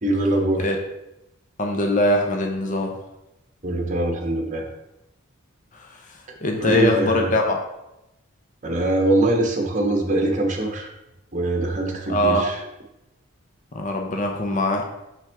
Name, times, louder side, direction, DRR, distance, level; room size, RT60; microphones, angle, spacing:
voice 1, 0.0-0.6 3.6-4.7 6.6-7.3 8.6-10.9 11.3-12.6, right 2 dB, 35° right, 2 dB, 1.0 m, -22 dB
voice 2, 1.6-3.0 5.7-5.9 6.4-7.6 12.1-12.5 13.7-14.9, left 1 dB, 35° left, 2 dB, 0.7 m, -22 dB
6.1 x 5.7 x 3.5 m, 0.91 s
head